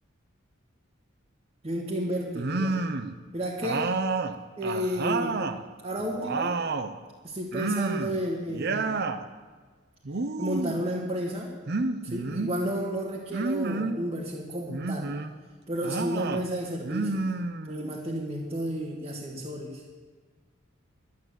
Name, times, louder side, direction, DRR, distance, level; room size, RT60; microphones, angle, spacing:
voice 1, 1.6-2.8 3.3-3.9 4.6-5.4 5.8-6.6 7.2-9.0 10.4-11.5 12.0-15.1 15.7-17.3 17.7-19.8, equal, 30° right, -4 dB, 1.7 m, -32 dB
sound 1, 2.3-3.1 3.6-5.6 6.0-6.9 7.5-8.2 8.5-9.2 10.0-10.8 11.7-12.6 13.3-14.0 14.7-15.3 15.8-16.4 16.8-17.9, right 3 dB, 50° right, 0.7 m, -30 dB
11.5 x 10.5 x 7.7 m, 1.4 s
head